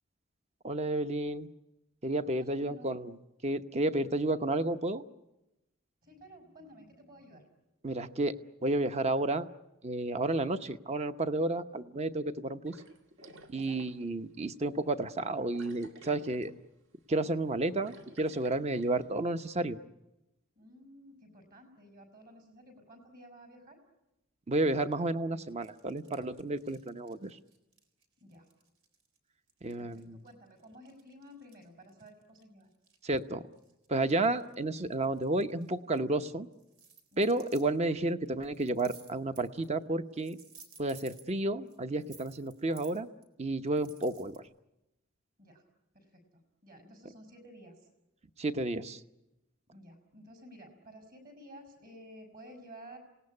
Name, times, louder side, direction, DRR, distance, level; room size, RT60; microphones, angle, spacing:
voice 1, 0.6-1.5 2.0-3.1 3.4-5.0 7.8-9.5 9.8-12.7 13.5-16.5 17.1-19.8 24.5-27.4 29.6-30.2 33.0-33.4 33.9-36.5 37.2-40.4 40.8-43.1 43.4-44.4 48.4-49.0, right 2 dB, 30° right, 10 dB, 0.8 m, -31 dB
voice 2, 2.4-3.0 6.0-7.5 13.6-13.9 20.6-23.8 28.2-28.5 29.8-32.7 37.1-37.4 45.4-45.6 45.9-47.9 49.7-53.0, equal, 45° right, 6 dB, 5.9 m, -53 dB
sound 1, 12.7-14.2 14.6-14.7 15.5-16.7 17.0-17.2 17.5-19.1, right 1 dB, 65° right, 1.8 m, -53 dB
sound 2, 25.5-29.2 29.5-33.2 33.5-36.0 36.5-37.6 38.3-39.8 40.1-41.3 41.7-43.2 43.7-44.4, right 5 dB, 85° right, 3.9 m, -57 dB
27.5 x 18.5 x 9.7 m, 0.99 s
head